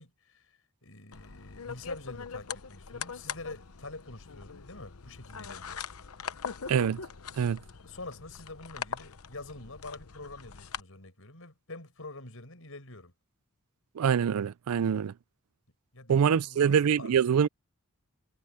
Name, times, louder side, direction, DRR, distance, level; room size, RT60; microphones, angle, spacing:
voice 1, 0.0-5.8 7.8-13.1 15.9-17.1, left 2 dB, 70° left, 6.9 m, -46 dB
sound 1, 1.1-10.8, left 6 dB, 90° left, 0.9 m, -42 dB
voice 2, 6.7-7.0 7.4-7.6 14.0-15.1 16.1-17.5, right 7 dB, 90° right, 0.4 m, -25 dB
head